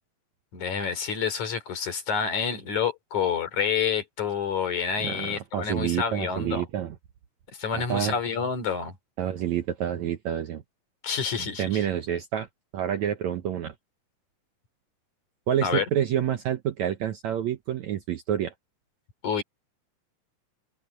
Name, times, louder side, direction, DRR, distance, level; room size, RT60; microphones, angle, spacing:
voice 1, 0.5-6.6 7.6-8.9 11.0-11.8 15.6-15.9 19.2-19.4, left 6 dB, 55° left, 4.7 m, -28 dB
voice 2, 5.0-7.0 7.7-8.1 9.2-10.6 11.4-12.5 12.7-13.7 15.5-18.5, right 10 dB, 70° right, 1.9 m, -28 dB
open air
omnidirectional pair, 4.2 m